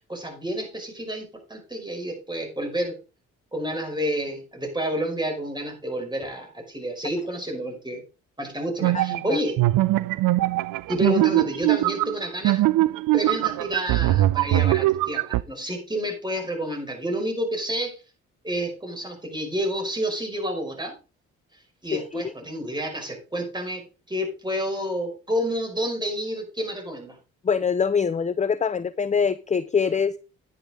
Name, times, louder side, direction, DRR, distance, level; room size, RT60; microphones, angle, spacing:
voice 1, 0.1-3.0 3.5-8.0 8.4-9.6 10.9-12.6 13.1-18.0 18.4-20.9 21.8-27.2, equal, 10° right, 5.5 m, -29 dB
sound 1, 8.8-15.4, right 16 dB, 65° right, 0.6 m, -22 dB
voice 2, 8.9-9.4 21.9-22.3 27.4-30.2, left 6 dB, 20° left, 0.6 m, -24 dB
9.8 x 9.5 x 3.8 m
hypercardioid pair, 55°, 35 cm